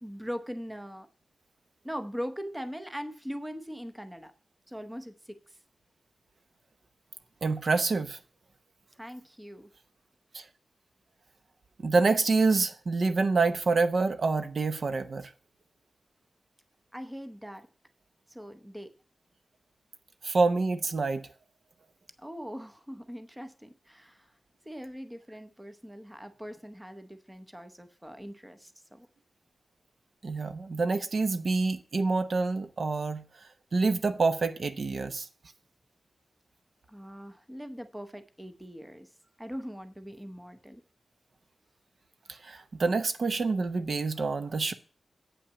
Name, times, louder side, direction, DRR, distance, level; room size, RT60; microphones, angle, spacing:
voice 1, 0.0-1.1 1.8-4.3 4.7-5.6 9.0-9.7 16.9-17.7 18.3-18.9 22.2-24.3 24.6-29.1 36.9-39.1 39.4-40.8, equal, 5° right, 0.8 m, -41 dB
voice 2, 7.4-8.2 10.3-10.4 11.8-15.3 20.2-21.3 30.2-33.2 33.7-35.3 42.3-44.7, right 3 dB, 55° right, 0.8 m, -27 dB
8.6 x 5.9 x 7.0 m
wide cardioid pair, 165°, 0 cm